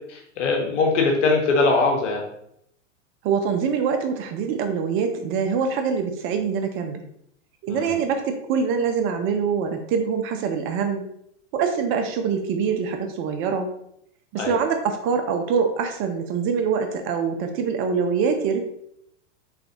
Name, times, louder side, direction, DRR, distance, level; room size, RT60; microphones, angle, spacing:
voice 1, 0.0-2.3 7.7-8.0 14.4-14.6, left 3 dB, 75° left, 1 dB, 1.1 m, -22 dB
voice 2, 3.2-7.0 7.6-11.1 11.5-13.7 14.3-18.6, right 6 dB, 35° right, 6 dB, 0.6 m, -24 dB
4.0 x 3.9 x 2.8 m, 0.73 s
hypercardioid pair, 110°, 36 cm